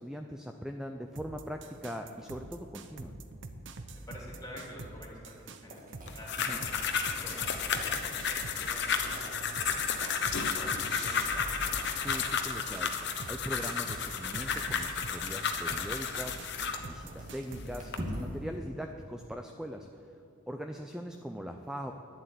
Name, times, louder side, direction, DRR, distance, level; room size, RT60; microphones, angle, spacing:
voice 1, 0.0-3.1 6.5-6.6 12.0-16.4 16.8-20.2 20.5-21.9, equal, 5° right, 4 dB, 0.4 m, -41 dB
sound 1, 1.2-18.0, right 2 dB, 60° right, 0.8 m, -45 dB
voice 2, 3.9-6.4 6.8-8.1 8.6-11.8, left 1 dB, 15° left, -3 dB, 3.0 m, -49 dB
sound 2, 5.7-18.6, equal, 40° right, 1.9 m, -47 dB
sound 3, 6.1-16.9 17.5-18.0, left 6 dB, 55° left, 0.9 m, -32 dB
10.5 x 7.6 x 9.6 m, 2.7 s
head